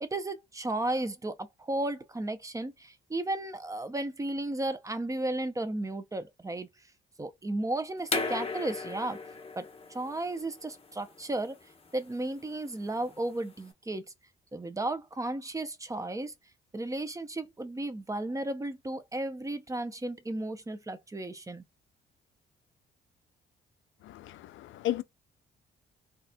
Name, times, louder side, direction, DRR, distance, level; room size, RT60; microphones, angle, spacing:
voice 1, 0.0-6.7 7.2-9.2 9.6-11.6 11.9-14.0 14.5-16.3 16.7-21.6, right 2 dB, 15° right, 0.6 m, -34 dB
sound 1, 8.0-13.6, left 4 dB, 30° left, 1.0 m, -37 dB
voice 2, 24.0-25.0, left 13 dB, 75° left, 0.4 m, -34 dB
4.1 x 2.4 x 2.2 m
cardioid pair, 90°, 20 cm